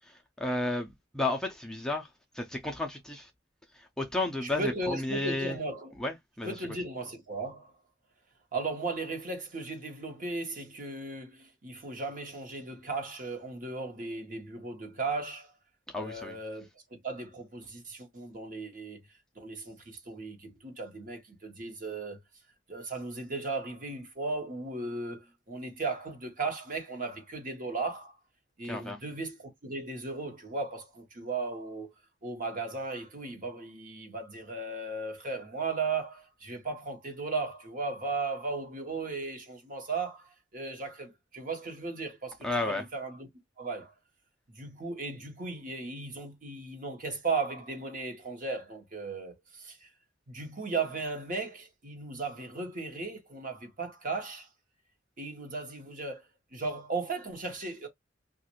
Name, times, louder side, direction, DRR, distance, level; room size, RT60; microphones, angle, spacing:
voice 1, 0.1-3.3 3.7-5.6 6.0-6.6 15.9-16.4 28.6-29.0 42.4-42.8, left 2 dB, 5° left, 0.4 m, -33 dB
voice 2, 4.4-5.9 6.4-7.7 8.5-15.5 16.0-19.0 19.4-22.2 22.7-28.2 28.6-31.9 32.2-42.4 42.6-43.3 43.6-43.9 44.5-49.9 50.3-54.5 55.2-56.2 56.5-57.9, right 3 dB, 45° right, 1.0 m, -36 dB
3.0 x 2.4 x 2.9 m
head